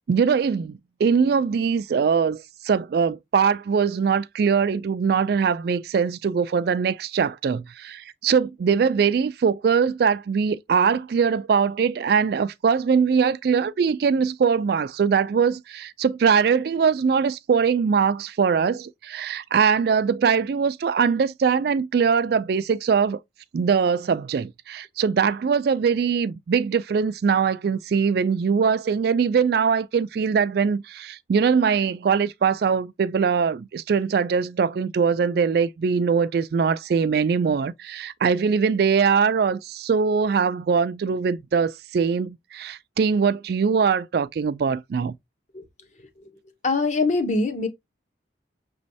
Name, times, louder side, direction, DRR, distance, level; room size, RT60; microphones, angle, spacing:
voice 1, 0.1-23.2 23.5-45.1, right 6 dB, 55° right, 0.3 m, -22 dB
voice 2, 45.9-46.3 46.6-47.7, left 3 dB, 40° left, 0.9 m, -24 dB
6.2 x 3.1 x 2.7 m
head